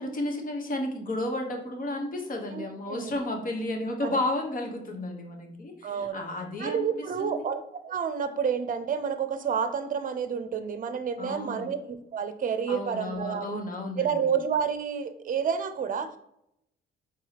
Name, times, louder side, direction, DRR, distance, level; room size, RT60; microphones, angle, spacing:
voice 1, 0.0-7.5 11.2-11.7 12.7-14.3, left 1 dB, 45° left, 3 dB, 1.1 m, -33 dB
voice 2, 2.5-3.1 4.0-4.2 5.8-6.2 6.6-13.6 14.0-16.1, right 7 dB, 45° right, 10 dB, 0.6 m, -30 dB
4.6 x 3.9 x 2.9 m, 0.77 s
cardioid pair, 90°, 20 cm